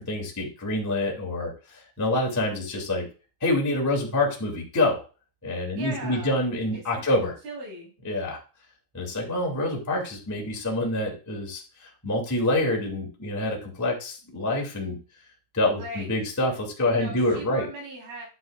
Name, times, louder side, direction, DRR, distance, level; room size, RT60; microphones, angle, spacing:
voice 1, 0.0-3.1 3.4-5.0 5.4-7.3 8.0-8.4 8.9-15.0 15.5-17.7, left 1 dB, 10° left, 0 dB, 0.8 m, -26 dB
voice 2, 5.7-6.5 7.0-7.1 7.4-7.9 15.7-16.1 16.9-18.2, right 2 dB, 55° right, -1 dB, 5.7 m, -38 dB
11.0 x 8.0 x 2.5 m, 0.35 s
omnidirectional pair, 5.3 m